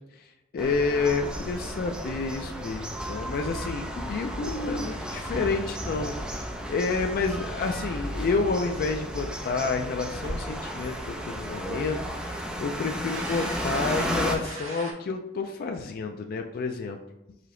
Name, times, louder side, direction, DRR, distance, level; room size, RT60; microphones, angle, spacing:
voice 1, 0.1-17.0, left 4 dB, 50° left, 4 dB, 0.3 m, -29 dB
sound 1, 0.6-14.3, equal, 5° right, 0.5 m, -34 dB
sound 2, 7.6-8.9 10.4-11.0 11.3-12.0 12.4-12.5 13.1-14.9, right 1 dB, 75° right, 1.5 m, -42 dB
sound 3, 7.8-8.1 8.4-8.8 9.1-9.3 9.7-11.0 11.3-11.4 11.9-12.0, right 1 dB, 25° right, 0.9 m, -41 dB
4.9 x 2.8 x 3.7 m, 0.97 s
head